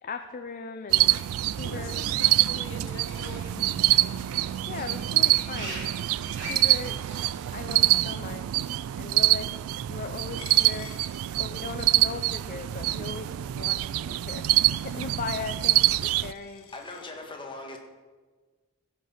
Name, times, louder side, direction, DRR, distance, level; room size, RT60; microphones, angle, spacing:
voice 1, 0.0-1.9 4.7-5.9 6.4-7.0 7.5-8.7 9.0-9.5 9.9-10.9 11.4-14.5 14.8-16.7, left 4 dB, 40° left, 0.5 m, -38 dB
sound 1, 0.9-16.3, right 15 dB, 85° right, 0.3 m, -25 dB
Fowl / Bird, 1.2-7.6, right 2 dB, 60° right, 2.6 m, -44 dB
voice 2, 1.6-4.1, left 2 dB, 65° left, 1.0 m, -43 dB
Coin (dropping), 10.4-17.1, left 7 dB, 90° left, 1.2 m, -51 dB
voice 3, 16.7-17.8, left 2 dB, 25° left, 1.5 m, -40 dB
15.5 x 5.5 x 5.6 m
head